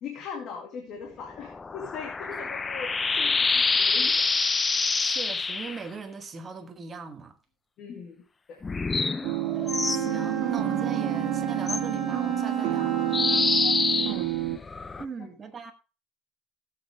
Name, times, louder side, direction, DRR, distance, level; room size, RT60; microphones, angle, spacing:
voice 1, 0.0-4.3 7.8-8.2 8.5-8.6 10.2-10.3 13.6-14.4 15.2-15.3, left 6 dB, 50° left, 2.1 m, -40 dB
sound 1, 1.3-5.8 8.6-10.0 11.7-11.8 13.1-15.1, left 4 dB, 15° left, 0.5 m, -26 dB
voice 2, 5.0-7.4 9.8-13.0 15.0-15.7, right 5 dB, 25° right, 1.5 m, -40 dB
sound 2, 9.2-14.6, right 14 dB, 80° right, 1.6 m, -28 dB
Wind instrument woodwind instrument, 9.6-13.5, right 1 dB, 5° right, 2.3 m, -35 dB
16.0 x 7.8 x 3.5 m
cardioid pair, 150°, 0 cm